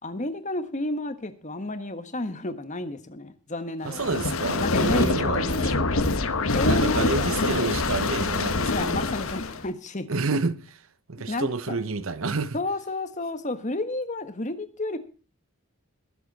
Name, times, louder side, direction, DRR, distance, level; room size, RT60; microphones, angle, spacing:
voice 1, 0.0-4.1 4.6-7.3 8.7-10.1 11.3-11.8 12.5-15.0, left 2 dB, 35° left, 1.4 m, -31 dB
voice 2, 3.8-6.0 6.6-9.1 10.1-10.8 11.1-12.6, right 3 dB, 70° right, 0.9 m, -29 dB
sound 1, 3.9-9.7, left 3 dB, 70° left, 1.1 m, -25 dB
20.5 x 8.1 x 4.1 m
head